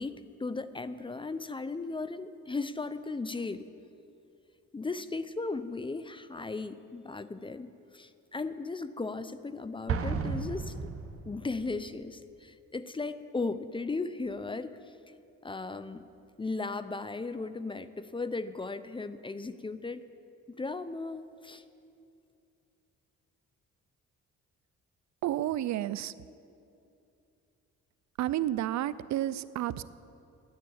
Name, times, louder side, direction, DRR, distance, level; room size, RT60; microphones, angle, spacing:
voice 1, 0.0-3.7 4.7-10.7 11.3-14.7 15.4-16.0 16.4-20.0 20.6-21.6, left 3 dB, 15° left, 13 dB, 0.5 m, -36 dB
Explosion, 9.9-11.7, right 5 dB, 50° right, 1.0 m, -33 dB
voice 2, 25.2-26.1 28.2-29.8, right 13 dB, 65° right, 17 dB, 0.5 m, -31 dB
11.0 x 9.7 x 8.6 m, 2.6 s
cardioid pair, 90°, 30 cm